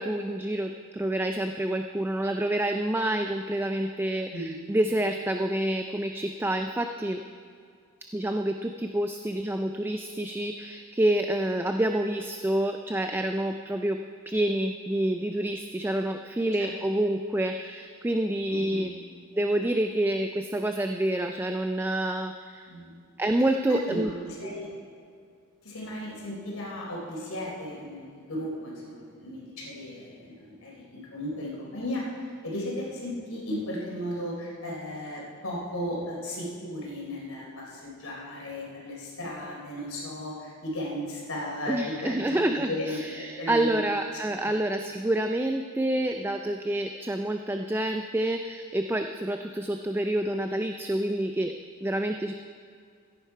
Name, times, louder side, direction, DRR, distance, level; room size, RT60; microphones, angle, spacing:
voice 1, 0.0-7.2 8.1-18.9 19.3-22.7 23.2-24.1 41.7-51.6 51.8-52.3, right 1 dB, 10° right, 6 dB, 0.4 m, -28 dB
voice 2, 18.5-18.9 22.7-23.0 23.7-24.7 25.6-43.7, left 1 dB, 70° left, -3 dB, 3.9 m, -35 dB
15.5 x 10.0 x 4.7 m, 2.2 s
head